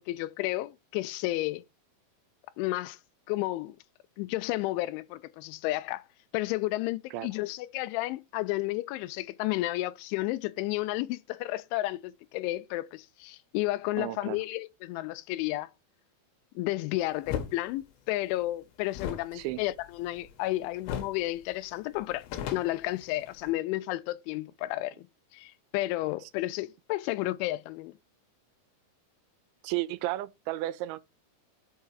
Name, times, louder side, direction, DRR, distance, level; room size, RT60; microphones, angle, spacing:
voice 1, 0.0-1.6 2.6-3.0 3.3-3.8 4.2-6.0 6.3-15.7 16.6-22.3 22.5-25.1 25.3-27.9, left 17 dB, 85° left, 3.1 m, -32 dB
voice 2, 14.0-14.4 19.3-19.6 29.6-31.0, right 16 dB, 85° right, 3.0 m, -33 dB
sound 1, 17.2-17.5 18.9-20.5 20.8-21.2 21.5-21.6 22.0-23.5, left 9 dB, 70° left, 3.0 m, -37 dB
6.7 x 5.5 x 4.8 m
omnidirectional pair, 5.3 m